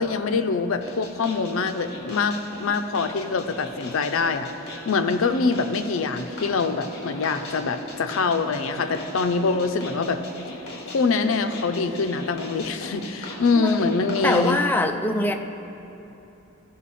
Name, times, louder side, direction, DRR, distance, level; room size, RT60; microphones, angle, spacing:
voice 1, 0.0-4.5 4.9-10.2 10.9-14.6, left 4 dB, 70° left, 8 dB, 0.5 m, -24 dB
sound 1, 0.8-14.5, left 2 dB, 50° left, 1.4 m, -39 dB
voice 2, 14.2-15.4, left 2 dB, 10° left, 4 dB, 0.4 m, -23 dB
14.5 x 5.4 x 4.2 m, 3.0 s
head